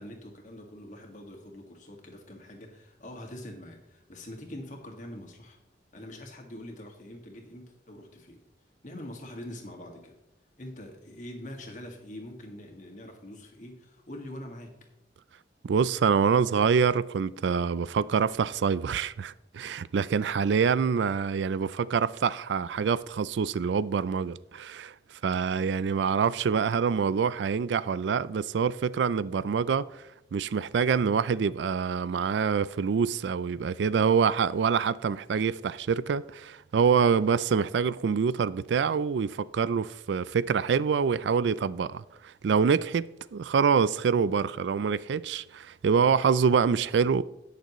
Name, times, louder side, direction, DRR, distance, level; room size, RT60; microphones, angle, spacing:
voice 1, 0.0-5.6 5.9-8.4 8.8-10.2 10.6-14.7, left 1 dB, 45° left, 1.8 m, -44 dB
voice 2, 15.6-24.9 25.2-30.0 30.3-47.2, right 6 dB, 85° right, 0.4 m, -26 dB
19.0 x 6.7 x 3.0 m
head